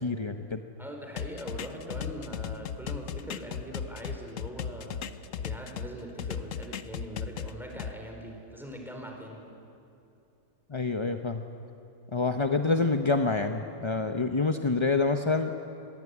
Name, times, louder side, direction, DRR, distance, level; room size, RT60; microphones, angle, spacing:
voice 1, 0.0-0.6 10.7-11.4 12.1-15.5, left 3 dB, 30° left, 6 dB, 0.5 m, -27 dB
voice 2, 0.8-9.5, equal, ahead, 1 dB, 4.6 m, -41 dB
sound 1, 1.2-5.9 6.2-7.9, left 8 dB, 55° left, 1.0 m, -36 dB
27.0 x 20.5 x 9.9 m, 2.8 s
omnidirectional pair, 1.8 m